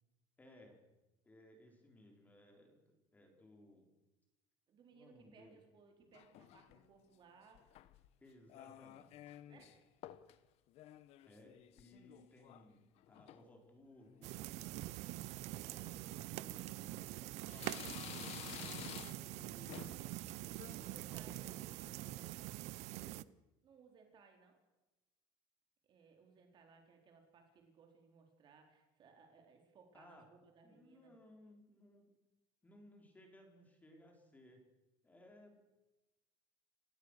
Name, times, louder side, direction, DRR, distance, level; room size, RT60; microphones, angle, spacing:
voice 1, 0.4-0.9 1.2-3.9 4.9-5.6 8.2-9.6 10.8-10.9 11.2-15.0 15.3-16.9 17.1-20.1 20.8-22.5 22.9-23.2 29.9-30.3 30.6-32.1 32.6-34.6 35.0-35.6, left 1 dB, 15° left, 2 dB, 5.2 m, -62 dB
voice 2, 4.7-7.7 9.5-9.8 20.6-21.6 23.6-24.6 25.8-31.1, right 5 dB, 40° right, 3 dB, 4.2 m, -64 dB
sound 1, 6.1-6.9 7.5-8.1 8.5-9.7 10.0-10.4 10.7-12.7 13.0-13.5 14.0-14.3 14.7-14.8 15.7-15.9 16.5-17.1 17.5-19.4 19.7-20.1 20.5-20.8, left 13 dB, 55° left, 1.2 m, -52 dB
sound 2, 14.2-23.2, right 17 dB, 60° right, 0.8 m, -45 dB
29.5 x 17.5 x 6.8 m, 1.0 s
cardioid pair, 145°, 13 cm